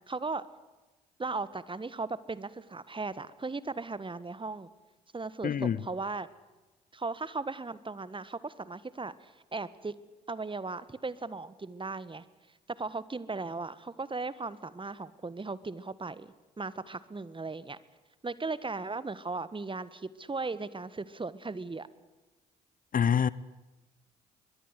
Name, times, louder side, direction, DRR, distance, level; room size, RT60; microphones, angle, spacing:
voice 1, 0.1-0.5 1.2-4.7 5.1-6.3 6.9-9.9 10.3-12.2 12.7-17.8 18.2-21.9, right 3 dB, 25° right, 1.5 m, -37 dB
voice 2, 5.4-5.8 22.9-23.3, left 8 dB, 40° left, 0.7 m, -25 dB
22.5 x 22.0 x 8.2 m
hypercardioid pair, 45°, 21 cm